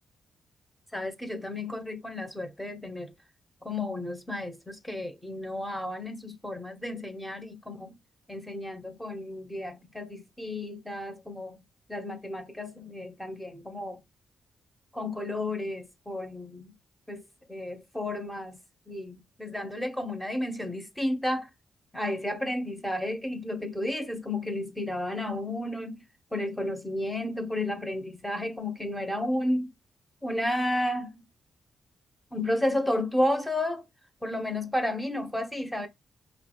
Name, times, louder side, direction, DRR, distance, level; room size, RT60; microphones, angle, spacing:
voice 1, 0.9-3.1 3.6-7.9 8.3-11.6 11.9-14.0 14.9-16.7 17.1-17.2 17.5-18.6 18.9-21.5 21.9-26.0 26.3-29.7 30.2-31.2 32.3-33.8 34.2-35.9, left 1 dB, 5° left, 1.0 m, -32 dB
5.3 x 3.1 x 3.0 m
cardioid pair, 130°, 0 cm